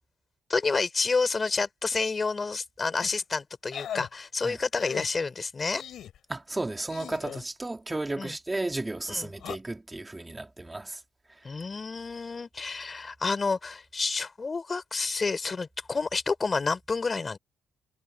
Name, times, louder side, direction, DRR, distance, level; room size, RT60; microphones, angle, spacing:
voice 1, 0.5-5.8 8.2-8.3 9.1-9.3 11.4-17.4, left 4 dB, 30° left, 4.8 m, -29 dB
sound 1, 3.0-3.2 3.7-4.1 4.7-5.1 5.7-6.2 6.9-7.4 9.3-9.6, left 10 dB, 70° left, 4.5 m, -39 dB
voice 2, 6.3-11.0, right 2 dB, 15° right, 3.1 m, -33 dB
cardioid pair, 90°, 0 cm